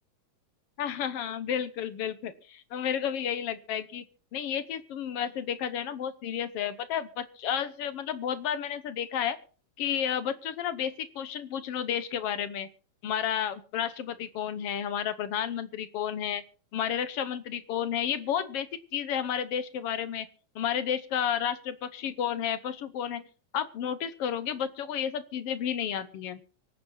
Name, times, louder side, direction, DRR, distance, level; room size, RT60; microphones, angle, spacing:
voice 1, 0.8-4.0 4.3-9.4 9.8-12.7 13.0-16.4 16.7-18.7 18.9-20.3 20.5-23.2 23.5-26.4, left 9 dB, 65° left, 13 dB, 1.7 m, -31 dB
24.5 x 8.7 x 4.1 m, 0.39 s
omnidirectional pair, 3.3 m